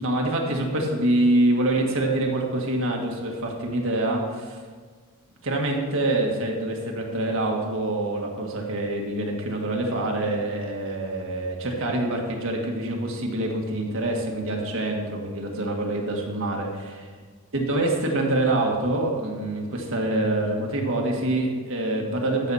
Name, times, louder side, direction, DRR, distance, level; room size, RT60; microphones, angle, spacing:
voice 1, 0.0-4.6 5.4-17.1 17.5-22.5, right 1 dB, 65° right, 0 dB, 1.7 m, -25 dB
13.0 x 7.1 x 4.2 m, 1.5 s
head